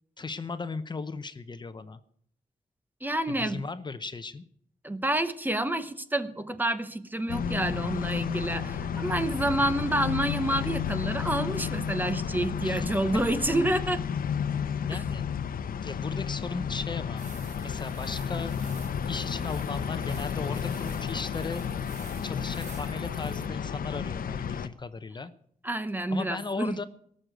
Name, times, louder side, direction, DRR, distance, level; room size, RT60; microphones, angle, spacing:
voice 1, 0.2-2.0 3.3-4.4 12.6-12.9 14.9-15.2 15.8-17.3 17.6-18.5 19.1-21.7 22.2-25.3 26.1-26.8, left 4 dB, 30° left, 11 dB, 0.8 m, -36 dB
voice 2, 3.0-3.6 4.8-14.0 14.9-15.0 25.6-26.8, right 1 dB, 15° right, 11 dB, 0.9 m, -28 dB
sound 1, 7.3-24.7, left 7 dB, 85° left, 0.8 m, -32 dB
sound 2, 17.2-23.5, right 5 dB, 55° right, 1.4 m, -50 dB
18.5 x 6.6 x 9.0 m, 0.64 s
wide cardioid pair, 135°, 14 cm